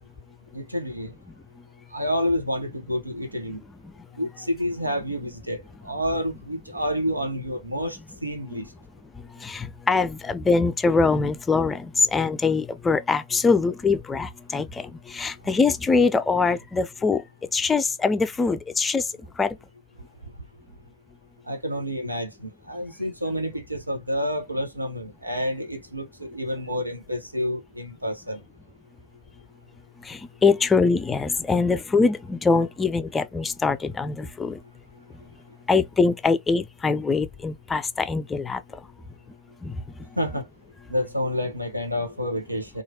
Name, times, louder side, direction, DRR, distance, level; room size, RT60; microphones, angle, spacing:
voice 1, 0.5-1.1 1.9-3.6 4.1-8.7 21.5-28.4 40.2-40.5 40.9-42.8, equal, 85° right, 0.7 m, -29 dB
voice 2, 9.4-17.2 17.5-19.0 19.4-19.6 30.1-34.6 35.7-38.6 39.6-39.8, left 4 dB, 15° left, 0.4 m, -23 dB
3.0 x 2.4 x 2.7 m
figure-of-eight pair, 90°, 0 cm